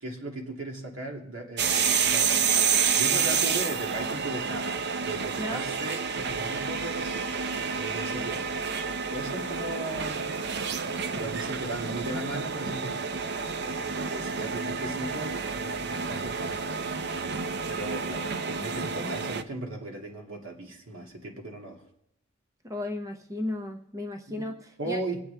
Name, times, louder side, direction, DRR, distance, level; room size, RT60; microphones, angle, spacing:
voice 1, 0.0-8.5 9.1-10.3 11.1-17.4 17.7-21.8 24.3-24.5 24.8-25.2, right 2 dB, 70° right, 0 dB, 2.2 m, -37 dB
sound 1, 1.6-19.4, right 6 dB, 55° right, 0.6 m, -29 dB
voice 2, 5.4-5.7 22.6-25.0, left 1 dB, 15° right, 4 dB, 0.6 m, -34 dB
22.5 x 8.5 x 3.4 m, 0.77 s
head